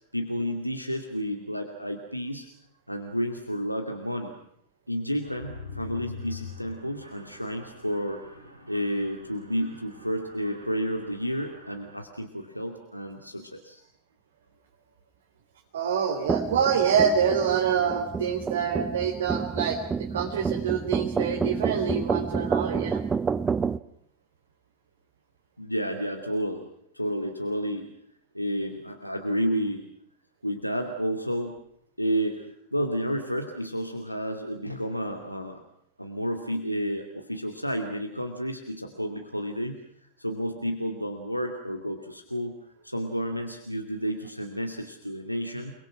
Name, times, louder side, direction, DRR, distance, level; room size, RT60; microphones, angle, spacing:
voice 1, 0.1-2.5 2.9-4.3 4.9-8.3 8.7-13.8 25.6-26.6 26.9-27.9 28.3-29.8 30.4-31.6 32.0-35.6 36.0-39.8 40.2-42.6 42.8-45.7, equal, 90° left, 4 dB, 2.4 m, -31 dB
Mechanisms, 5.2-12.0, left 4 dB, 85° right, 5.3 m, -44 dB
voice 2, 15.7-23.0, right 7 dB, 60° right, 1 dB, 3.6 m, -26 dB
sound 1, 16.3-23.8, right 5 dB, 15° right, 0.9 m, -29 dB
30.0 x 22.0 x 6.1 m, 0.73 s
figure-of-eight pair, 90°, 0 cm